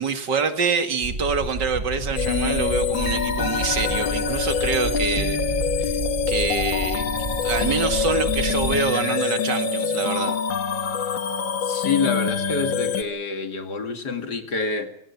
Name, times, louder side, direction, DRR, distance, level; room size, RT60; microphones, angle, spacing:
voice 1, 0.0-5.4 5.8-6.0 6.3-7.1 7.4-10.4, right 5 dB, 65° right, 2.7 m, -26 dB
sound 1, 1.0-8.8, right 2 dB, 35° right, 3.2 m, -30 dB
sound 2, 2.2-13.0, left 6 dB, 80° left, 2.1 m, -25 dB
voice 2, 11.6-14.9, left 4 dB, 60° left, 2.9 m, -27 dB
26.5 x 17.0 x 7.3 m
omnidirectional pair, 2.0 m